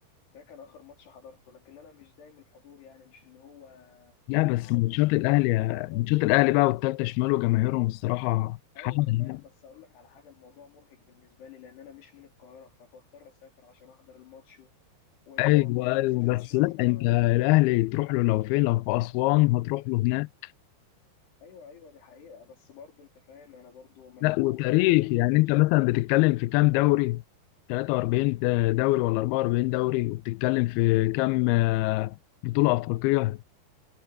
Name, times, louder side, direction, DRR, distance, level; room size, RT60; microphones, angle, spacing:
voice 1, 0.3-4.2 4.6-6.1 8.8-14.7 15.2-17.2 21.4-25.6, left 6 dB, 65° left, 5.9 m, -51 dB
voice 2, 4.3-8.6 8.8-9.4 15.4-20.3 24.2-27.2 27.7-32.2 32.4-33.4, left 21 dB, 90° left, 2.2 m, -24 dB
omnidirectional pair, 5.1 m